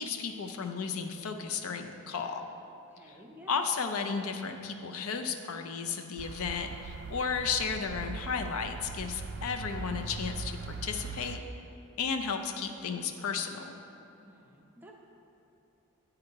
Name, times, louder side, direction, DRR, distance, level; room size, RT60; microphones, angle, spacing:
voice 1, 0.0-2.4 3.1-3.2 3.5-11.4 12.0-13.7, left 5 dB, 75° left, 6 dB, 0.5 m, -34 dB
voice 2, 2.9-3.6 14.2-14.9, equal, 10° right, -1 dB, 0.6 m, -53 dB
sound 1, 6.2-11.4, right 4 dB, 50° right, 0.3 m, -40 dB
9.6 x 3.7 x 4.5 m, 2.7 s
head